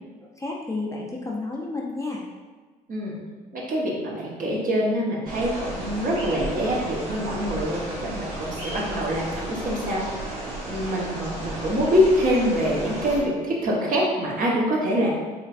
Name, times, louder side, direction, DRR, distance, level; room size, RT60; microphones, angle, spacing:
voice 1, 0.2-2.2, left 3 dB, 15° left, -3 dB, 0.7 m, -31 dB
voice 2, 3.5-10.0 10.3-10.4 10.7-15.1, equal, 45° right, -4 dB, 1.2 m, -25 dB
sound 1, 5.3-13.2, right 1 dB, 80° right, 1.1 m, -33 dB
4.3 x 3.2 x 2.6 m, 1.4 s
hypercardioid pair, 55°, 20 cm